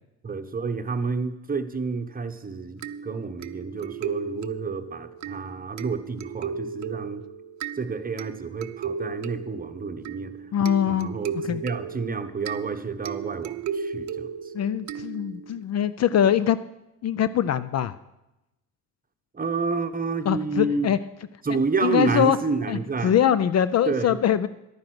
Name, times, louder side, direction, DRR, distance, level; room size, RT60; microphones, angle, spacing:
voice 1, 0.2-7.2 7.7-10.4 10.9-14.5 19.3-20.9 21.4-23.1 23.9-24.2, right 4 dB, 25° right, 9 dB, 1.0 m, -29 dB
sound 1, 2.8-15.6, right 6 dB, 50° right, 0.7 m, -35 dB
voice 2, 10.5-11.1 11.4-11.6 14.5-16.6 17.0-17.9 20.3-21.0 21.8-22.4 22.7-24.5, left 9 dB, 45° left, 15 dB, 0.5 m, -22 dB
11.0 x 9.5 x 6.2 m, 0.94 s
supercardioid pair, 65°, 36 cm